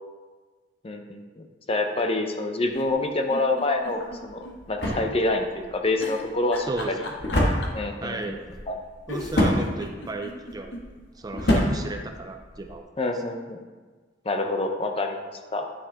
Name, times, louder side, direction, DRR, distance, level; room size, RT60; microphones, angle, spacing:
voice 1, 0.8-4.4 4.7-6.9 7.7-8.4 8.7-8.8 13.0-13.6 14.2-15.6, left 2 dB, 30° left, 4 dB, 0.6 m, -27 dB
sound 1, 2.7-4.6 4.9-5.0 6.0-7.9 8.7-8.8 9.1-10.8 11.3-11.4 11.6-11.7, left 2 dB, 80° left, 1.0 m, -38 dB
sound 2, 3.9-12.8, left 1 dB, 60° left, 1.6 m, -28 dB
voice 2, 8.0-8.4 9.1-10.7 11.2-12.8, right 2 dB, 20° right, 4 dB, 0.4 m, -34 dB
9.7 x 5.7 x 3.5 m, 1.4 s
head